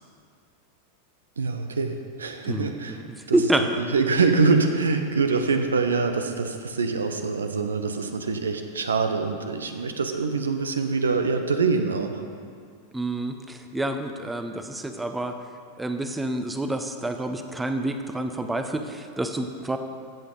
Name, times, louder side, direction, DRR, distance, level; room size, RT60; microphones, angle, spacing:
voice 1, 1.4-3.0 3.3-3.4 3.8-12.2, right 4 dB, 70° right, 6 dB, 0.9 m, -24 dB
voice 2, 2.4-3.8 12.9-15.4 15.8-19.8, right 1 dB, 10° right, 7 dB, 0.8 m, -28 dB
14.0 x 8.1 x 4.0 m, 2.2 s
figure-of-eight pair, 90°, 0 cm